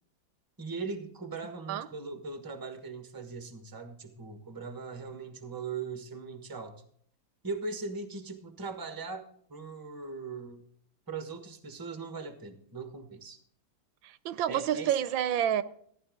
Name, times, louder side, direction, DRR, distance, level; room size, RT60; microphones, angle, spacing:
voice 1, 0.6-6.8 7.4-10.6 11.1-13.4 14.5-14.9, right 4 dB, 15° right, 1.0 m, -39 dB
voice 2, 14.0-15.6, right 10 dB, 85° right, 1.4 m, -29 dB
14.5 x 9.8 x 3.6 m
omnidirectional pair, 2.1 m